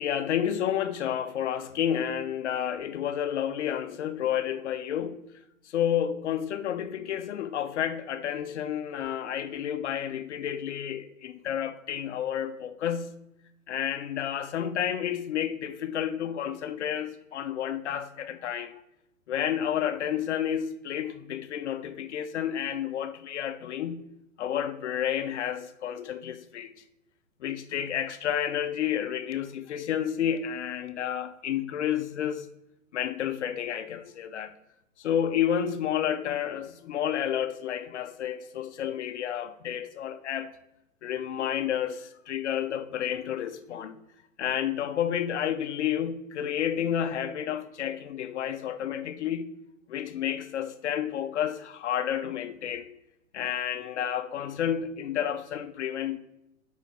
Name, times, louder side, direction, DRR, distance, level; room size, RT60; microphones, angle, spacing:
voice 1, 0.0-5.2 5.7-13.2 13.7-18.8 19.3-24.1 24.4-26.7 27.4-32.5 32.9-34.5 35.0-40.6 41.0-44.0 44.4-49.5 49.9-53.0 53.3-56.2, left 9 dB, 60° left, 0.5 m, -30 dB
5.9 x 4.7 x 3.5 m
hypercardioid pair, 150°, 41 cm